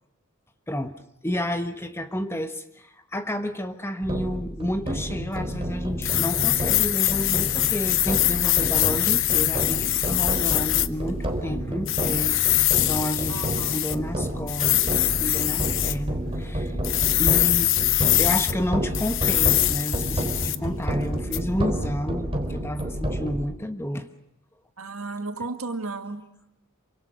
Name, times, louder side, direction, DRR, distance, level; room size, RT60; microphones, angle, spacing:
voice 1, 0.7-17.7 18.2-24.1, equal, 10° left, 8 dB, 1.3 m, -31 dB
sound 1, 4.0-23.4, equal, 25° right, 3.7 m, -30 dB
sound 2, 6.0-10.9 11.9-13.9 14.5-15.9 16.8-18.5 18.9-20.6 21.3-21.4, left 15 dB, 60° left, 0.9 m, -23 dB
voice 2, 13.3-13.9 24.8-26.2, right 3 dB, 75° right, 6 dB, 2.3 m, -34 dB
27.0 x 25.0 x 6.3 m, 0.85 s
head